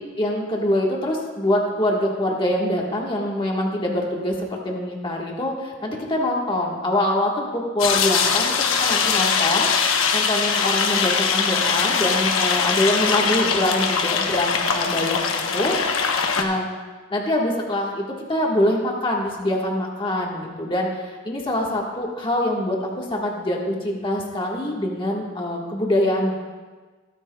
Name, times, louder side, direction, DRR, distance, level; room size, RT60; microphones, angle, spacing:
voice 1, 0.2-4.3 4.6-8.5 8.8-15.7 16.1-16.6 17.1-18.0 18.3-26.3, left 1 dB, 25° left, -2 dB, 1.5 m, -24 dB
sound 1, 7.8-16.4, left 6 dB, 90° left, 1.0 m, -22 dB
22.0 x 9.0 x 2.3 m, 1.4 s
head